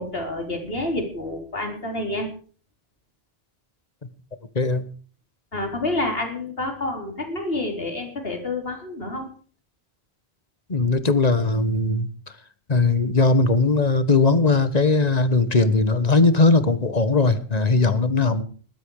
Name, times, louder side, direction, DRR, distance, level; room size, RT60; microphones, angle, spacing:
voice 1, 0.0-2.3 5.5-9.3, left 2 dB, 70° left, 4 dB, 4.4 m, -28 dB
voice 2, 10.7-12.1 12.7-18.4, left 3 dB, 40° left, 12 dB, 1.6 m, -19 dB
19.5 x 12.5 x 4.9 m, 0.42 s
omnidirectional pair, 1.0 m